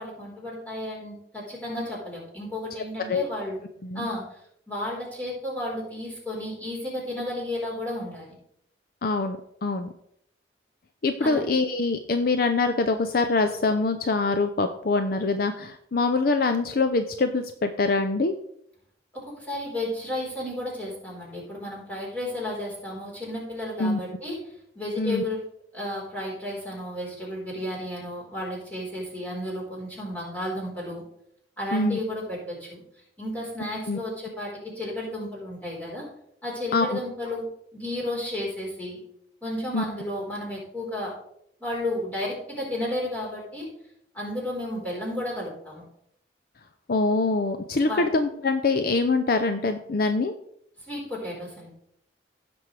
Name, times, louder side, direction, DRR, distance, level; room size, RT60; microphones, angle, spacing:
voice 1, 0.0-3.6 3.9-4.4 4.7-8.3 11.2-11.4 19.1-24.4 24.7-25.4 25.7-31.0 31.6-32.8 33.2-36.0 36.4-37.4 37.7-39.0 39.4-41.1 41.6-43.7 44.1-45.8 47.9-48.1 50.8-51.7, left 1 dB, 10° left, -5 dB, 4.1 m, -33 dB
voice 2, 9.0-9.9 11.0-18.3 23.8-24.0 25.0-25.2 31.7-32.0 33.9-34.0 36.7-37.0 39.7-39.8 46.9-50.3, left 3 dB, 55° left, 8 dB, 0.5 m, -24 dB
16.0 x 6.1 x 3.3 m, 0.72 s
head